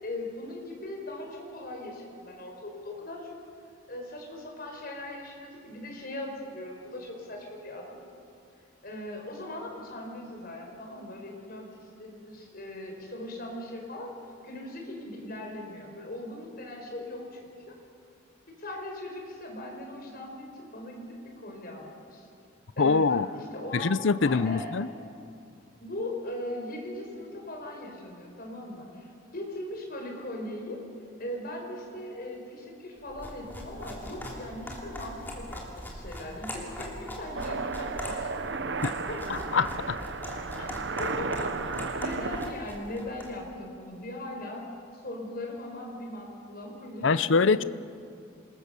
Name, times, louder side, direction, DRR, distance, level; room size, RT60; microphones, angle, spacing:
voice 1, 0.0-3.4 3.9-8.0 8.8-14.1 14.4-17.7 18.6-22.3 22.8-24.8 25.8-30.8 31.2-39.4 40.6-40.7 41.0-41.5 41.9-44.6 44.9-47.5, left 1 dB, 50° left, 1 dB, 4.8 m, -39 dB
voice 2, 22.8-23.3 23.7-24.9 38.8-38.9 39.5-40.0 47.0-47.6, left 4 dB, 70° left, 17 dB, 0.6 m, -24 dB
sound 1, 33.1-43.4, equal, 10° left, 3.1 m, -41 dB
sound 2, 37.3-42.5, right 4 dB, 60° right, 0.9 m, -34 dB
27.0 x 21.0 x 6.8 m, 2.4 s
head